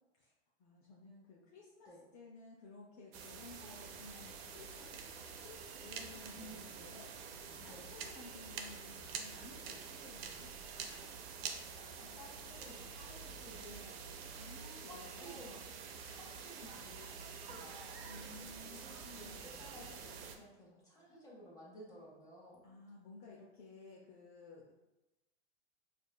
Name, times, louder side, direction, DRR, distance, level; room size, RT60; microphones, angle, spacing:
voice 1, 0.6-5.6 5.8-10.5 14.4-15.5 18.1-19.7 21.0-21.2 22.6-24.8, left 3 dB, 45° left, -3 dB, 0.7 m, -56 dB
sound 1, 3.1-20.4, right 6 dB, 65° right, 0.6 m, -47 dB
voice 2, 10.8-11.3 11.6-14.5 14.8-15.6 15.9-22.7, equal, 10° left, -6 dB, 1.5 m, -55 dB
4.8 x 2.5 x 2.3 m, 1.0 s
hypercardioid pair, 115°, 33 cm